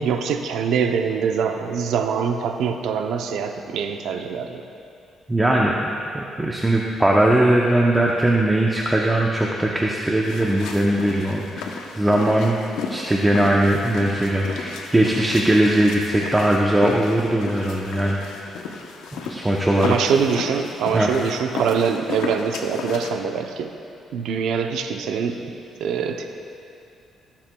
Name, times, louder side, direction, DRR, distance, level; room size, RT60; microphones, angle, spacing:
voice 1, 0.0-4.6 19.8-23.7 24.1-25.5 25.8-26.3, right 6 dB, 80° right, 5 dB, 0.7 m, -24 dB
voice 2, 5.3-5.7 6.1-11.7 12.0-12.6 12.9-18.2 19.1-19.9 20.9-21.1, right 1 dB, 15° right, -2 dB, 0.7 m, -20 dB
sound 1, 10.2-23.1, left 5 dB, 90° left, 0.8 m, -34 dB
19.5 x 7.4 x 2.3 m, 2.6 s
cardioid pair, 90°, 0 cm